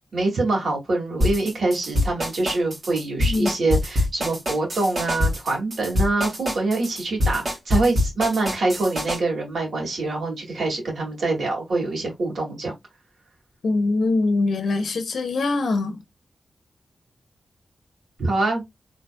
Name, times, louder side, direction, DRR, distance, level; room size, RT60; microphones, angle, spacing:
voice 1, 0.1-12.7 18.2-18.6, right 2 dB, 70° right, 2.0 m, -25 dB
sound 1, 1.2-9.2, left 1 dB, 50° right, 2.2 m, -24 dB
voice 2, 3.2-3.5 13.6-16.0, left 3 dB, 85° left, 0.7 m, -23 dB
4.3 x 3.3 x 2.2 m
wide cardioid pair, 80°, 0 cm